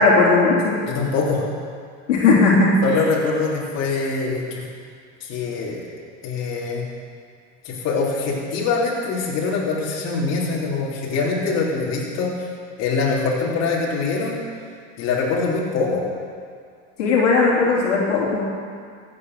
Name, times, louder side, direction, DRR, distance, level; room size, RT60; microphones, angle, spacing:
voice 1, 0.0-0.8 2.1-2.8 17.0-18.4, left 3 dB, 90° left, -4 dB, 3.4 m, -17 dB
voice 2, 0.8-1.5 2.8-4.7 5.2-5.8 6.2-6.9 7.6-12.5 12.8-14.4 15.0-16.0, left 4 dB, 45° left, -4 dB, 3.7 m, -23 dB
15.5 x 8.8 x 6.4 m, 2.2 s
supercardioid pair, 100°, 35 cm